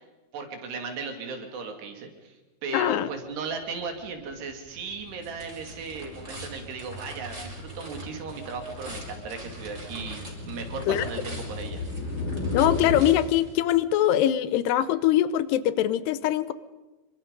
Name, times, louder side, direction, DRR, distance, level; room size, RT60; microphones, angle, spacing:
voice 1, 0.3-2.4 2.6-11.8, right 4 dB, 65° right, 5 dB, 4.7 m, -36 dB
voice 2, 2.7-3.1 10.9-11.0 12.5-16.5, left 12 dB, 75° left, 15 dB, 2.7 m, -23 dB
sound 1, 3.8-4.2 4.4-13.0, left 2 dB, 45° left, 4.6 m, -36 dB
sound 2, 4.5-14.0, right 1 dB, 15° right, 4.7 m, -45 dB
26.5 x 24.0 x 5.3 m, 1.1 s
omnidirectional pair, 5.1 m